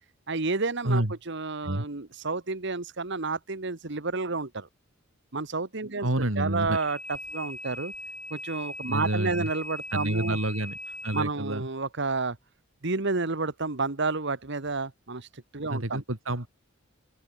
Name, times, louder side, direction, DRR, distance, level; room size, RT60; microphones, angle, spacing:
voice 1, 0.3-4.7 5.3-7.9 8.3-10.4 11.1-12.4 12.8-15.3 15.5-16.0, right 3 dB, 60° right, 1.5 m, -30 dB
voice 2, 6.0-6.8 8.9-9.5 9.9-10.8 11.0-11.7 15.7-16.5, right 1 dB, 85° right, 3.2 m, -28 dB
sound 1, 6.7-11.2, left 1 dB, 5° left, 7.6 m, -40 dB
open air
head